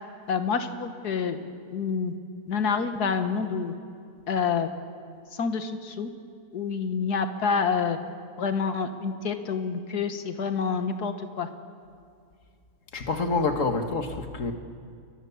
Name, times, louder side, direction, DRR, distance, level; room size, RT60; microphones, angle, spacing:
voice 1, 0.3-1.4 1.7-2.1 2.5-3.7 4.3-4.7 5.3-6.1 6.5-8.0 8.4-11.5, left 5 dB, 85° left, 8 dB, 1.9 m, -27 dB
voice 2, 12.9-14.5, left 3 dB, 55° left, 6 dB, 2.0 m, -27 dB
30.0 x 22.5 x 7.2 m, 2.4 s
omnidirectional pair, 1.6 m